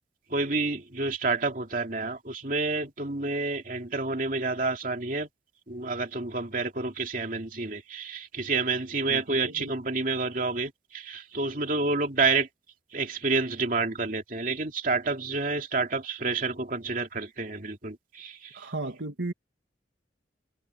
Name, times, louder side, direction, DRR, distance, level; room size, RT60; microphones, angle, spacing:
voice 1, 0.3-5.3 5.7-12.5 12.9-18.7, right 3 dB, 50° right, 2.8 m, -29 dB
voice 2, 9.1-9.8 18.5-19.3, right 2 dB, 90° right, 2.1 m, -35 dB
head